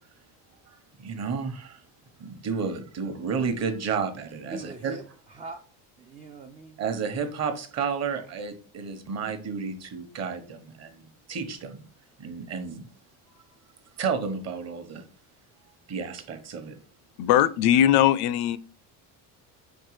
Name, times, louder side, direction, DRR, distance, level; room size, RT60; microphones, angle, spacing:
voice 1, 0.7-1.8 2.2-5.0 6.8-11.8 12.2-12.9 13.3-13.4 14.0-15.0 15.9-16.7, right 5 dB, 40° right, 1.1 m, -32 dB
voice 2, 4.4-5.7 6.0-6.8, right 3 dB, 20° right, 0.3 m, -42 dB
voice 3, 17.2-18.6, left 11 dB, 65° left, 0.5 m, -20 dB
4.6 x 4.6 x 4.7 m
cardioid pair, 140°, 41 cm